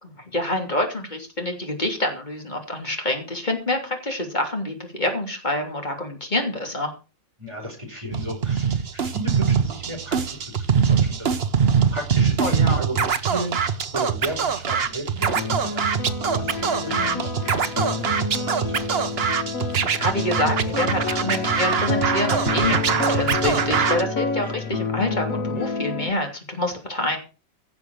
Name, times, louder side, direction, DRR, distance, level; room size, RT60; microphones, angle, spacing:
voice 1, 0.0-6.9 12.4-12.8 16.9-17.2 19.8-27.2, left 1 dB, 30° left, 3 dB, 3.3 m, -27 dB
voice 2, 7.4-11.4 11.9-15.8 16.3-18.8, right 1 dB, 20° right, 1 dB, 5.3 m, -35 dB
Scratching (performance technique), 8.1-24.0, right 6 dB, 50° right, 1.2 m, -23 dB
sound 1, 15.4-26.1, left 3 dB, 80° left, 2.0 m, -29 dB
16.5 x 7.0 x 6.3 m, 0.33 s
omnidirectional pair, 1.4 m